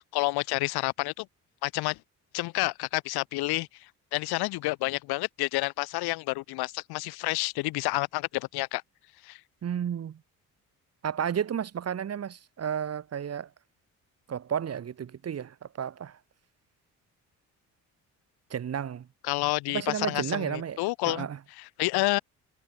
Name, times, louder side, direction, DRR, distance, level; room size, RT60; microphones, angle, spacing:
voice 1, 0.1-1.3 1.6-2.0 2.3-3.7 4.1-8.8 9.2-9.4 19.3-21.3 21.6-22.2, left 21 dB, 85° left, 2.1 m, -29 dB
voice 2, 9.6-10.2 11.0-13.5 14.3-16.2 18.5-19.1 19.7-21.4, right 8 dB, 40° right, 1.0 m, -32 dB
supercardioid pair, 65°, 37 cm